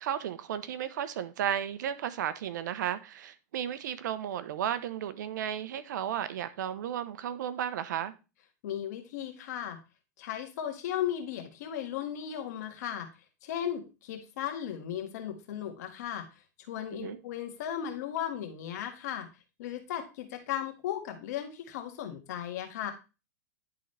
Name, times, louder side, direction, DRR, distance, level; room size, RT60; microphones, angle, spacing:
voice 1, 0.0-8.1 17.0-17.2, right 10 dB, 80° right, 0.8 m, -34 dB
voice 2, 8.6-9.8 10.2-13.1 13.4-16.3 16.6-19.3 19.6-22.9, left 10 dB, 65° left, 1.7 m, -36 dB
10.5 x 3.9 x 3.3 m
supercardioid pair, 145°, 10 cm